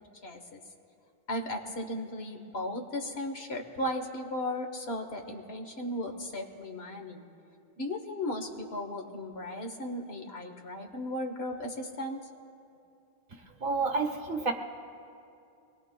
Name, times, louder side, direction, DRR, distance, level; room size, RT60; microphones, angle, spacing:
voice 1, 0.2-0.6 1.3-7.2 7.8-12.2, left 1 dB, 70° left, 4 dB, 1.4 m, -36 dB
voice 2, 13.6-14.5, right 4 dB, 55° right, 3 dB, 1.2 m, -29 dB
24.0 x 20.5 x 2.3 m, 2.6 s
omnidirectional pair, 1.1 m